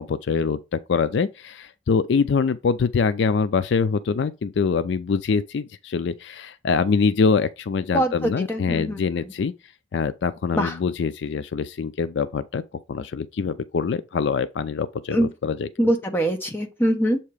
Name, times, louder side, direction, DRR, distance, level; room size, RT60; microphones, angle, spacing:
voice 1, 0.0-9.5 9.9-12.6 12.9-15.7, left 5 dB, 65° left, 0.4 m, -24 dB
voice 2, 7.9-9.3 10.5-10.8 15.1-15.3 15.8-17.2, right 1 dB, 10° left, 1.0 m, -23 dB
7.3 x 2.9 x 4.8 m
head